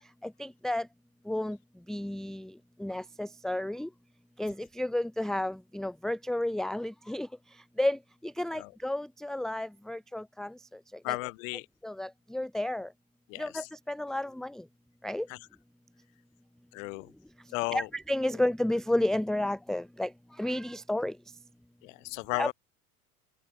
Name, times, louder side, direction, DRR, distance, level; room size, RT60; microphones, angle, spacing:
voice 1, 0.2-0.9 1.3-1.6 1.9-2.5 2.8-3.9 4.4-7.3 7.8-8.0 8.4-10.5 11.1-11.2 11.8-12.9 13.4-14.6 15.0-15.3 17.7-20.1 20.4-21.1 22.4-22.5, left 1 dB, ahead, 0.8 m, -31 dB
voice 2, 11.0-11.7 13.3-13.7 15.3-15.4 16.7-17.1 17.5-17.9 21.8-22.5, left 27 dB, 60° left, 1.1 m, -35 dB
open air
hypercardioid pair, 80°, 44 cm